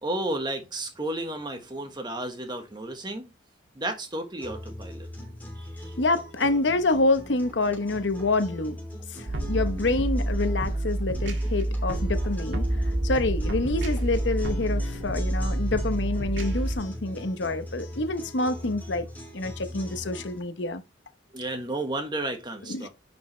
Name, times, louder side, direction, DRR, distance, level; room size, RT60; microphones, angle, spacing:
voice 1, 0.0-3.3 3.7-5.1 5.6-5.9 21.3-22.9, right 1 dB, 25° right, 1.4 m, -32 dB
sound 1, 4.4-20.4, equal, 10° left, 3.0 m, -41 dB
voice 2, 6.0-8.8 9.1-12.7 13.0-19.1 19.3-20.8 22.7-22.9, left 2 dB, 70° left, 1.0 m, -27 dB
sound 2, 9.3-16.8, right 1 dB, 70° right, 2.0 m, -28 dB
10.5 x 5.3 x 3.2 m
head